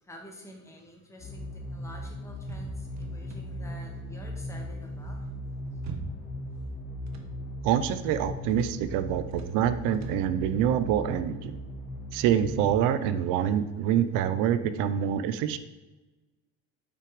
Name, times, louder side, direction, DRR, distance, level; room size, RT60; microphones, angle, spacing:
voice 1, 0.0-5.3, left 1 dB, 10° left, 0 dB, 1.6 m, -49 dB
sound 1, 1.2-12.7, left 1 dB, 30° left, 1.9 m, -38 dB
sound 2, 2.4-3.8 5.3-6.5 6.7-7.4 7.8-8.1 8.5-8.9 9.3-9.7 9.9-10.3, right 4 dB, 55° right, 1.3 m, -43 dB
voice 2, 7.6-11.5 12.1-15.6, right 10 dB, 75° right, 12 dB, 0.8 m, -26 dB
8.4 x 6.0 x 5.0 m, 1.1 s
cardioid pair, 155°, 32 cm